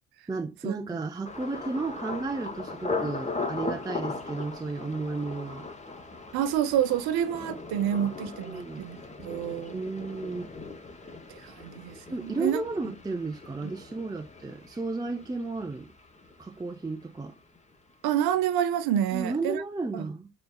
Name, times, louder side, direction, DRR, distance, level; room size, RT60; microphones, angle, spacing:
voice 1, 0.3-5.7 8.2-8.9 9.7-10.5 12.1-15.9 16.4-17.4 19.1-20.3, right 3 dB, 10° right, 0.5 m, -33 dB
Thunder, 1.2-17.0 17.3-17.9 18.3-18.6, left 3 dB, 20° left, 1.0 m, -39 dB
voice 2, 6.3-9.8 11.3-12.6 13.6-13.7 18.0-19.6 19.9-20.1, right 10 dB, 70° right, 0.8 m, -28 dB
4.1 x 3.5 x 2.3 m
hypercardioid pair, 60°, 39 cm